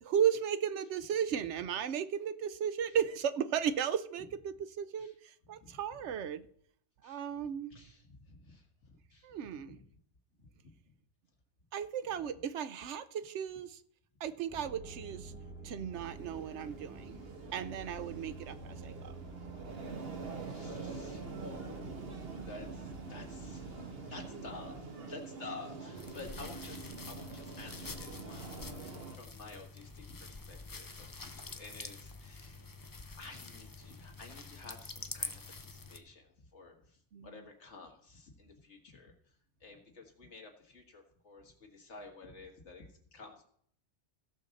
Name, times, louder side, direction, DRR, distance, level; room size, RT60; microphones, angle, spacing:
voice 1, 0.0-6.5 7.0-7.8 9.2-9.8 11.7-13.8 14.2-15.3 15.6-17.3 17.5-19.1 37.1-37.3, right 8 dB, 80° right, 13 dB, 1.0 m, -35 dB
voice 2, 5.4-6.1 7.0-7.3 7.7-9.8 10.4-10.7 15.3-15.4 18.9-19.3 19.8-19.9 20.4-32.7 33.2-43.4, left 3 dB, 90° left, 2 dB, 2.0 m, -52 dB
sound 1, 14.5-24.8, right 2 dB, 10° right, 1.8 m, -49 dB
sound 2, 15.9-29.2, right 4 dB, 60° right, 1.3 m, -45 dB
sound 3, 25.9-36.0, left 3 dB, 25° left, 0.5 m, -46 dB
16.5 x 6.4 x 4.1 m, 0.63 s
omnidirectional pair, 1.2 m